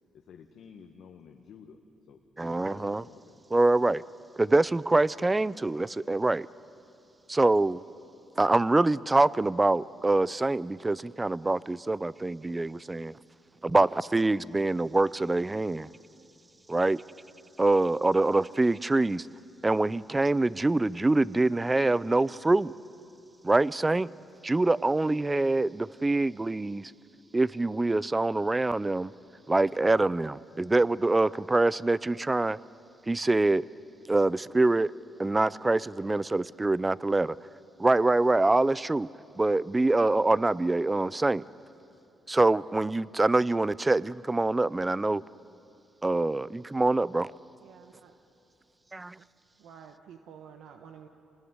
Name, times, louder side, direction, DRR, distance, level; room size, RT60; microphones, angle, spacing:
voice 1, 0.1-1.8 2.1-3.4, left 6 dB, 70° left, 1.6 m, -51 dB
voice 2, 2.4-3.0 3.5-4.0 4.4-6.5 7.3-7.8 8.4-13.2 13.6-15.9 16.7-17.0 17.6-19.3 19.6-22.7 23.4-24.1 24.4-26.9 27.3-29.1 29.5-32.6 33.1-33.7 34.1-34.9 35.2-37.4 37.8-39.1 39.4-41.4 42.3-45.2 46.0-47.3 48.9-49.2, right 2 dB, 20° right, 0.5 m, -25 dB
voice 3, 47.6-48.1 49.2-49.3 49.6-51.1, right 7 dB, 80° right, 1.2 m, -50 dB
26.5 x 19.5 x 9.7 m
cardioid pair, 90°, 0 cm